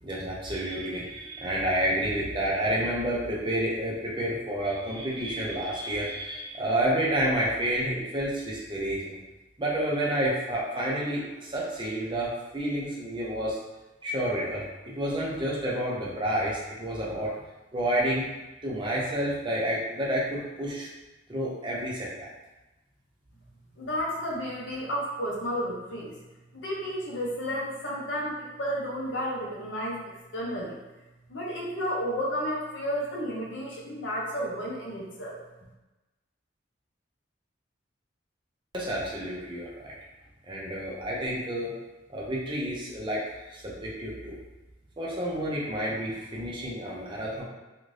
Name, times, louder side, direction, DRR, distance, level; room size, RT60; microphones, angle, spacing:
voice 1, 0.0-9.2 9.6-13.6 14.0-17.3 17.7-18.3 18.6-20.9 21.3-22.1 38.7-39.9 40.4-41.7 42.1-43.2 43.5-44.4 45.0-47.4, right 1 dB, 25° right, -5 dB, 0.5 m, -29 dB
voice 2, 23.8-26.1 26.6-30.0 30.3-30.8 31.3-35.4, equal, 75° left, -3 dB, 0.7 m, -32 dB
2.5 x 2.5 x 3.2 m, 1.1 s
head